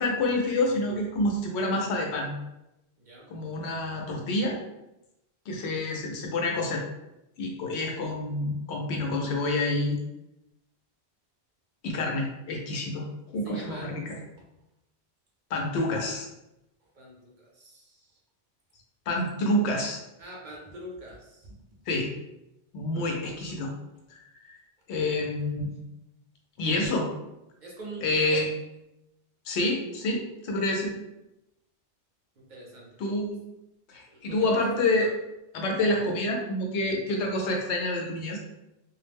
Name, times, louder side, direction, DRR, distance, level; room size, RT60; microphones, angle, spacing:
voice 1, 0.0-2.3 3.3-4.6 5.5-6.8 7.4-10.0 11.8-13.1 13.3-14.2 15.5-16.3 19.1-20.0 21.9-22.1 22.7-23.7 24.1-24.2 24.4-24.6 24.9-25.7 26.6-27.1 28.0-28.5 29.5-30.9 33.0-33.4 33.9-35.1 35.5-38.4, left 2 dB, 85° left, 1 dB, 0.9 m, -28 dB
voice 2, 3.0-3.3 13.4-14.0 16.9-18.2 20.2-21.5 22.9-23.2 27.6-28.5 32.4-33.0 34.1-34.7, right 1 dB, 50° right, -3 dB, 0.7 m, -44 dB
2.4 x 2.0 x 3.3 m, 0.90 s
omnidirectional pair, 1.1 m